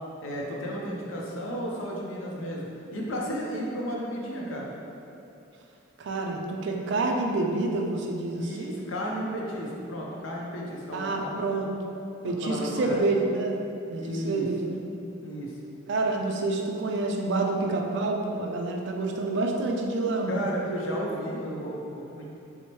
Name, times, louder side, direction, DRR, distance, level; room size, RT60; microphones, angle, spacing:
voice 1, 0.2-4.7 8.3-11.3 12.2-13.0 14.0-14.5 15.2-15.5 20.3-22.2, equal, 75° left, -2 dB, 0.6 m, -33 dB
voice 2, 6.0-8.9 10.9-11.7 12.2-13.6 13.9-14.8 15.9-20.4, right 2 dB, 60° right, 1 dB, 0.3 m, -28 dB
4.4 x 2.0 x 2.9 m, 2.7 s
head